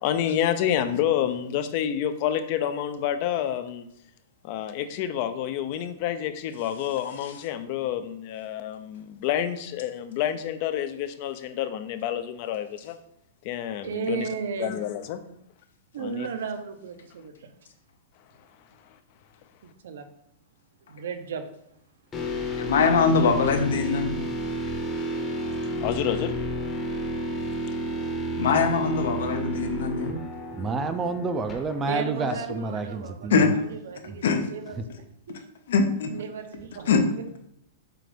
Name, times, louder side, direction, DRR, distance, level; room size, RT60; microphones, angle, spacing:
voice 1, 0.0-3.9 4.4-13.0 13.4-14.3 14.6-15.2 16.0-16.3 25.8-26.3, left 10 dB, 40° left, 11 dB, 0.5 m, -28 dB
voice 2, 13.8-14.8 15.9-17.5 19.6-20.1 20.9-21.4 31.8-35.4 36.1-37.2, right 6 dB, 80° right, 7 dB, 0.9 m, -35 dB
sound 1, 22.1-32.1, equal, 15° left, 0.9 m, -31 dB
voice 3, 22.6-24.2 28.4-30.1 33.3-33.5 34.2-34.4 35.7-36.1 36.9-37.0, left 5 dB, 75° left, 7 dB, 0.9 m, -22 dB
voice 4, 30.6-33.5 34.1-34.2 34.8-34.9, right 3 dB, 15° right, 9 dB, 0.4 m, -29 dB
7.6 x 2.6 x 5.1 m, 0.75 s
supercardioid pair, 165°, 0 cm